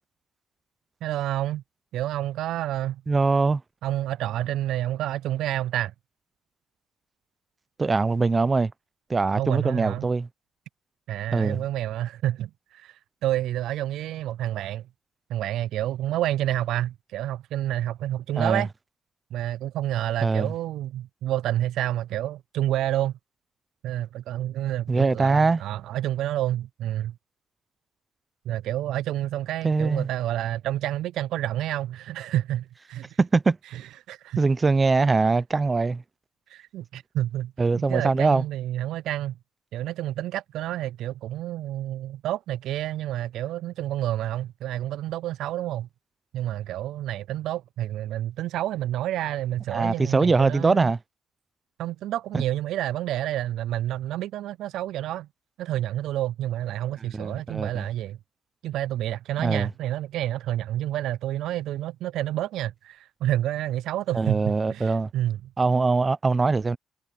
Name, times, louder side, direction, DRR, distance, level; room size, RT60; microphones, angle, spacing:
voice 1, 1.0-1.6 1.9-3.0 3.8-5.9 9.3-10.1 11.1-14.8 15.3-18.7 19.3-23.1 23.8-27.1 28.5-33.0 33.7-33.8 34.1-34.4 36.5-39.4 39.7-45.9 46.3-50.9 51.8-55.3 55.6-58.2 58.6-65.5, right 13 dB, 85° right, 0.3 m, -29 dB
voice 2, 3.1-3.6 7.8-8.7 9.1-10.3 11.3-11.6 18.4-18.7 20.2-20.5 24.9-25.6 29.6-30.1 33.2-33.6 34.4-36.0 37.6-38.4 49.7-51.0 52.3-52.4 57.0-57.9 59.4-59.7 64.1-65.1 65.6-66.8, right 4 dB, 30° right, 0.7 m, -22 dB
cardioid pair, 90°, 0 cm